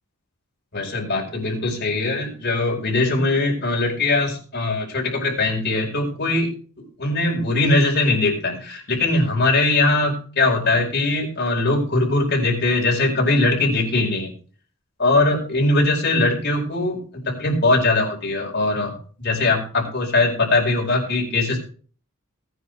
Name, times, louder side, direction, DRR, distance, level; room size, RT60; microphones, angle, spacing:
voice 1, 0.7-6.5 7.0-14.3 15.0-18.9 19.2-21.6, left 2 dB, 50° left, -1 dB, 5.0 m, -21 dB
19.0 x 10.5 x 3.4 m, 0.41 s
head